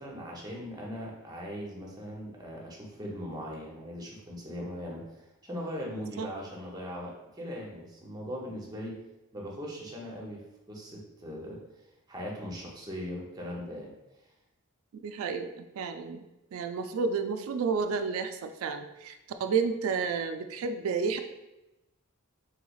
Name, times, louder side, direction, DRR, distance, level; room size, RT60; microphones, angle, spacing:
voice 1, 0.0-8.9 9.3-10.4 10.7-11.6 12.1-13.9, equal, 20° right, -2 dB, 0.6 m, -39 dB
voice 2, 14.9-16.2 16.5-21.2, right 5 dB, 75° right, 8 dB, 0.3 m, -31 dB
3.3 x 3.1 x 2.3 m, 0.96 s
head